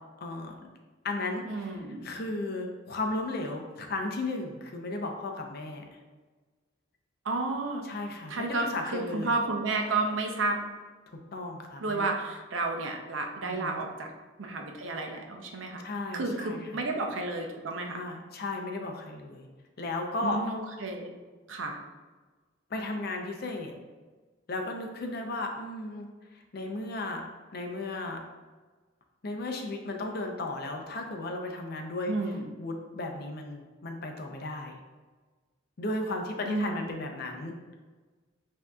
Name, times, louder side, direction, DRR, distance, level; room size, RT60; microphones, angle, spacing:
voice 1, 0.2-0.7 1.0-1.7 2.0-5.8 7.8-9.4 11.1-12.0 13.4-13.8 15.8-16.6 17.9-19.5 19.8-20.4 22.7-23.7 24.5-26.1 26.3-27.2 27.5-28.2 29.2-32.1 32.6-34.8 35.8-37.5, left 2 dB, 55° left, 3 dB, 0.6 m, -35 dB
voice 2, 1.5-2.1 7.2-7.8 8.3-10.6 11.8-14.1 14.4-15.8 16.1-18.0 20.2-21.1 21.5-21.8 32.1-32.5 36.4-36.9, right 3 dB, 85° right, 3 dB, 0.6 m, -31 dB
7.5 x 2.7 x 2.3 m, 1.3 s
head